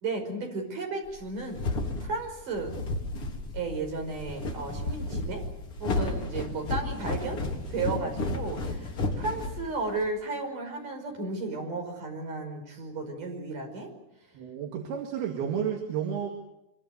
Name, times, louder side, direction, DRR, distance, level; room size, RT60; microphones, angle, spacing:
voice 1, 0.0-1.6 2.0-2.8 3.5-5.4 5.8-7.4 7.7-8.9 9.2-13.9, right 3 dB, 55° right, 3 dB, 6.8 m, -34 dB
sound 1, 1.2-10.1, left 2 dB, 35° left, 4.2 m, -32 dB
voice 2, 14.3-16.3, right 8 dB, 75° right, 2 dB, 4.0 m, -31 dB
25.0 x 24.0 x 7.9 m, 0.84 s
omnidirectional pair, 4.5 m